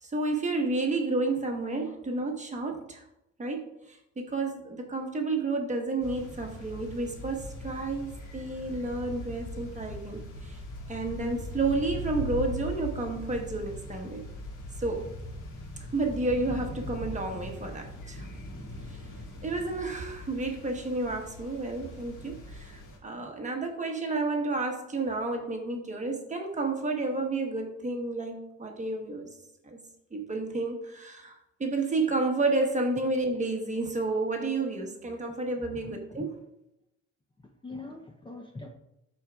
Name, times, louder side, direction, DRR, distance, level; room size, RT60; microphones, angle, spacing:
voice 1, 0.0-3.0 3.4-10.6 10.9-14.3 14.8-15.1 15.9-18.3 18.9-19.0 19.4-29.3 29.6-29.8 30.1-36.3, right 2 dB, 25° right, 3 dB, 1.1 m, -31 dB
sound 1, 6.0-23.0, equal, 70° left, 2.3 m, -40 dB
voice 2, 35.7-36.3 37.4-38.7, left 2 dB, 15° left, 1 dB, 0.6 m, -43 dB
13.0 x 4.4 x 2.3 m, 0.86 s
cardioid pair, 140°, 32 cm